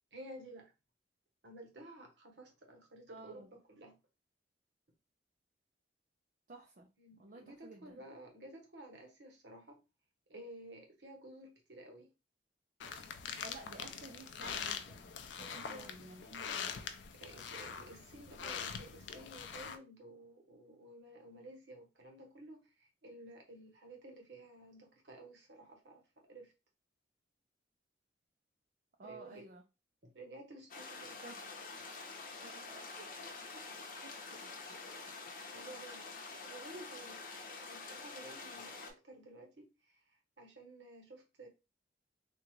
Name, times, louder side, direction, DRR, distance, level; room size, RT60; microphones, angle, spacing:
voice 1, 0.1-0.7 1.4-4.0 7.0-9.8 10.3-12.1 15.4-15.9 16.8-26.5 29.0-29.5 30.0-31.2 35.4-36.1 36.4-37.2 37.6-41.5, right 1 dB, 75° right, 1.1 m, -53 dB
voice 2, 3.1-3.5 6.5-6.9 7.2-8.0 13.4-15.1 15.5-16.7 29.0-29.6 31.2-31.4 32.4-33.6 34.0-34.8, right 2 dB, 50° right, 0.5 m, -54 dB
sound 1, 12.8-19.8, left 6 dB, 85° left, 0.5 m, -43 dB
sound 2, 30.7-38.9, left 4 dB, 50° left, 0.8 m, -47 dB
3.6 x 2.4 x 3.1 m
head